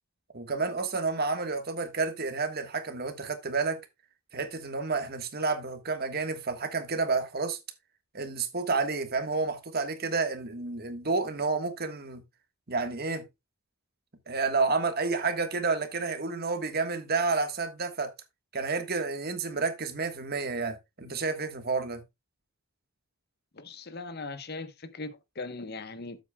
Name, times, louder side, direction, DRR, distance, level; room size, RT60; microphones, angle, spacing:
voice 1, 0.3-3.8 4.3-7.6 8.1-12.2 12.7-13.3 14.3-18.1 18.5-22.0, right 4 dB, 45° right, 1.5 m, -30 dB
voice 2, 23.5-26.2, left 3 dB, 50° left, 1.0 m, -39 dB
12.0 x 8.0 x 2.3 m
head